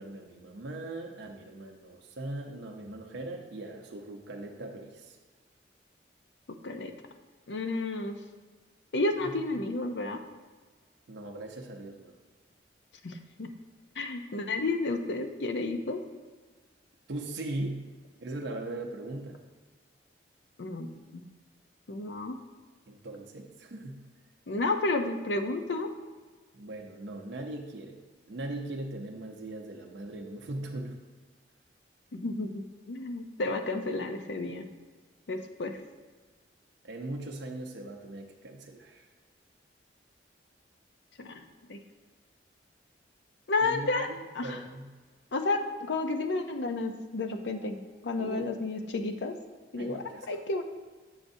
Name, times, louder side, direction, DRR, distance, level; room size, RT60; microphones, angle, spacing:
voice 1, 0.0-5.2 11.1-12.1 17.1-17.9 18.2-19.4 22.9-24.0 26.5-28.0 28.3-31.0 36.8-39.1 43.6-44.9 48.2-48.5 49.8-50.3, right 2 dB, 80° right, 1 dB, 0.6 m, -39 dB
voice 2, 7.5-8.1 8.9-10.2 13.0-13.5 14.0-16.0 20.6-21.2 21.9-22.4 24.5-25.9 32.1-34.7 35.3-35.8 41.2-41.4 41.7-41.8 43.5-44.1 44.3-44.6 45.3-47.8 48.0-49.3 49.7-50.6, left 2 dB, 75° left, 6 dB, 0.6 m, -31 dB
7.3 x 6.4 x 2.7 m, 1.4 s
head